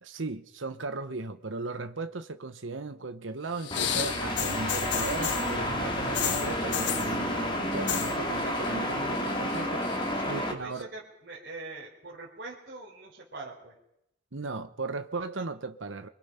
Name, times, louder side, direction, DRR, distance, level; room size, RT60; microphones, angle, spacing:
voice 1, 0.0-9.8 10.3-10.9 14.3-16.1, right 3 dB, 80° right, 1.1 m, -37 dB
sound 1, 3.6-5.5 6.1-7.1 7.7-8.1 8.4-8.9 9.3-10.0 10.8-10.9, left 9 dB, 65° left, 1.2 m, -32 dB
sound 2, 3.7-10.5, left 1 dB, 25° left, 3.5 m, -30 dB
voice 2, 10.1-13.8, right 3 dB, 55° right, 5.0 m, -43 dB
28.5 x 23.5 x 5.8 m
head